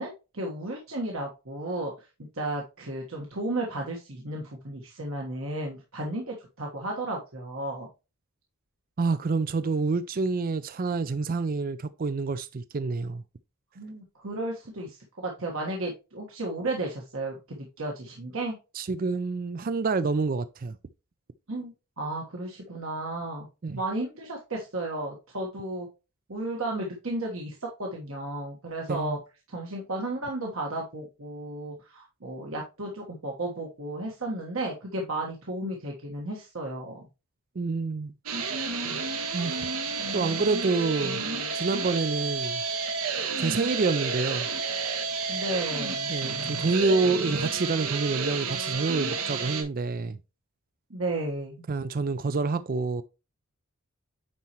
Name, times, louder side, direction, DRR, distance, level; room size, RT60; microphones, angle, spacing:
voice 1, 0.0-1.9 2.3-7.9 13.7-18.6 21.5-25.9 26.3-29.2 29.5-37.0 45.3-46.2 50.9-51.6, right 2 dB, 65° right, 1.4 m, -33 dB
voice 2, 9.0-13.2 18.8-20.8 23.6-23.8 28.9-29.2 37.6-38.1 39.3-39.7 40.1-41.2 41.5-42.6 43.4-44.5 46.1-50.2 51.7-53.0, right 3 dB, 40° right, 0.4 m, -27 dB
sound 1, 38.3-49.6, right 4 dB, 80° right, 1.4 m, -31 dB
9.4 x 4.3 x 3.0 m
head